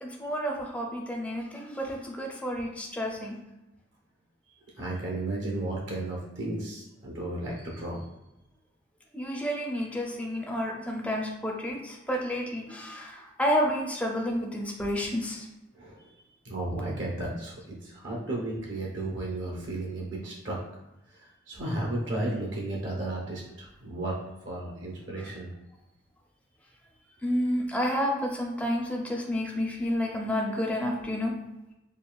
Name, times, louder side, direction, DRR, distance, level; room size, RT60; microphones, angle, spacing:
voice 1, 0.0-3.4 9.1-15.5 27.2-31.3, equal, 5° left, 0 dB, 0.4 m, -30 dB
voice 2, 4.8-8.1 15.7-16.2 16.4-20.6 21.1-24.2 24.4-25.5, right 2 dB, 70° right, -2 dB, 0.9 m, -34 dB
5.2 x 2.3 x 2.3 m, 0.95 s
head